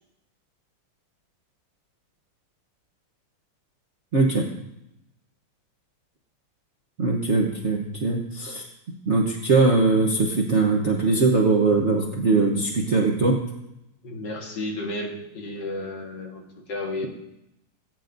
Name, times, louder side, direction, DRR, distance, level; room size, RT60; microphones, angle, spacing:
voice 1, 4.1-4.5 7.0-8.6 9.1-13.4, right 3 dB, 45° right, 0 dB, 0.9 m, -21 dB
voice 2, 14.0-16.4 16.7-17.1, left 2 dB, 55° left, 1 dB, 2.0 m, -32 dB
19.0 x 9.5 x 2.6 m, 0.87 s
omnidirectional pair, 2.4 m